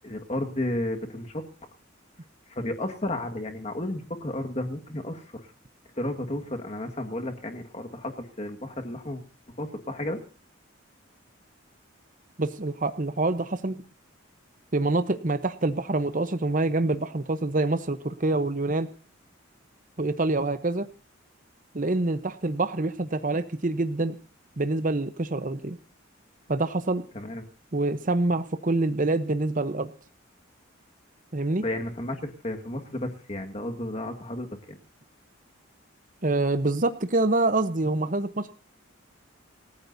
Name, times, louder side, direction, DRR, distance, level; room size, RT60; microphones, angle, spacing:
voice 1, 0.0-1.4 2.5-5.5 6.0-9.2 9.6-10.2 27.1-27.4 31.6-34.8, left 1 dB, 30° left, 5 dB, 1.8 m, -32 dB
voice 2, 12.4-13.8 14.7-18.9 20.0-20.9 21.7-24.2 24.6-25.8 26.5-27.0 27.7-29.9 31.3-31.6 36.2-38.5, right 2 dB, 40° right, 11 dB, 0.9 m, -26 dB
27.0 x 15.0 x 2.7 m, 0.37 s
head